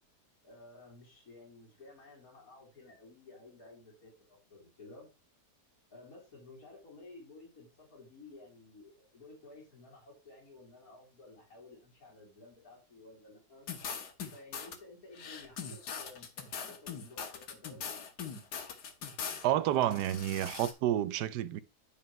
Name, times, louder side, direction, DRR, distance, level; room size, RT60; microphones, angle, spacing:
voice 1, 0.4-5.1 5.9-13.7 14.3-18.0, left 2 dB, 60° left, 3.1 m, -54 dB
sound 1, 13.7-14.8 15.1-19.5 19.8-20.7, left 6 dB, 90° left, 1.7 m, -41 dB
voice 2, 19.4-21.6, right 12 dB, 90° right, 1.2 m, -30 dB
10.0 x 3.5 x 5.3 m
omnidirectional pair, 1.7 m